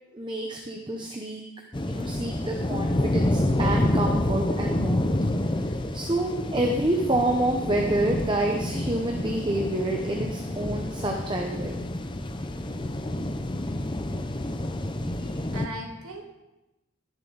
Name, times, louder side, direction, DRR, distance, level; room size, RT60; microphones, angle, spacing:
voice 1, 0.1-1.4 1.9-5.1 5.5-11.8, right 1 dB, 20° right, 1 dB, 0.9 m, -28 dB
sound 1, 1.7-15.7, left 1 dB, 20° left, 0.6 m, -28 dB
voice 2, 15.2-16.2, right 1 dB, 85° right, 1 dB, 2.2 m, -38 dB
18.5 x 7.3 x 4.1 m, 0.99 s
head